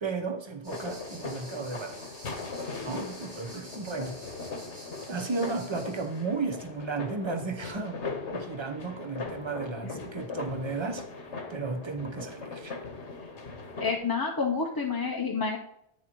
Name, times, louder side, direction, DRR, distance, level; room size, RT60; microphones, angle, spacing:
voice 1, 0.0-2.3 2.8-4.2 5.1-8.0 8.3-11.0 11.5-12.8, right 4 dB, 25° right, 5 dB, 0.8 m, -34 dB
sound 1, 0.6-6.2, right 1 dB, 80° right, 4.5 m, -49 dB
sound 2, 0.7-14.0, left 4 dB, 80° left, 1.4 m, -39 dB
voice 2, 13.8-15.6, left 4 dB, 25° left, 0 dB, 0.6 m, -28 dB
10.0 x 9.2 x 3.0 m, 0.78 s
omnidirectional pair, 1.2 m